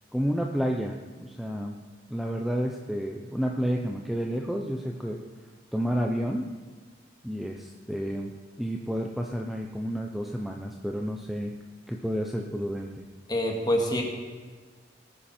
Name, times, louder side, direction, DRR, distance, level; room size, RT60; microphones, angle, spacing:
voice 1, 0.1-1.8 2.1-5.2 5.7-6.5 7.2-8.3 8.6-11.5 11.9-13.0, equal, ahead, 1 dB, 0.7 m, -30 dB
voice 2, 13.3-14.0, equal, 20° left, 1 dB, 2.1 m, -25 dB
19.0 x 9.4 x 4.4 m, 1.5 s
head